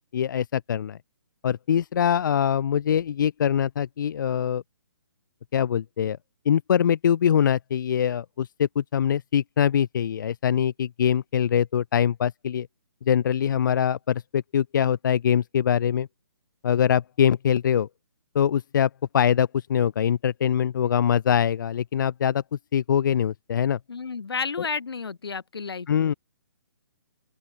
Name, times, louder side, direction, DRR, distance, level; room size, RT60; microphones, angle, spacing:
voice 1, 0.1-1.0 1.4-4.6 5.5-6.2 6.4-12.7 13.1-16.1 16.6-17.9 18.3-22.4 22.7-23.8 25.9-26.1, left 8 dB, 50° left, 1.4 m, -23 dB
voice 2, 23.9-26.1, left 5 dB, 70° left, 2.8 m, -32 dB
open air
figure-of-eight pair, 140°, 13 cm